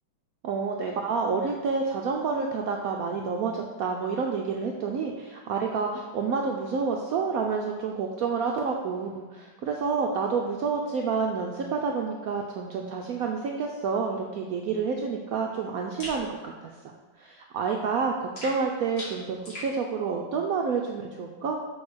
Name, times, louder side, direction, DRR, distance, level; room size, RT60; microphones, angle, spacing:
voice 1, 0.4-16.7 17.2-21.5, right 5 dB, 75° right, 1 dB, 0.8 m, -29 dB
sound 1, 16.0-16.2 18.4-19.7, left 1 dB, 55° left, 2.8 m, -39 dB
6.3 x 3.6 x 6.1 m, 1.3 s
omnidirectional pair, 2.1 m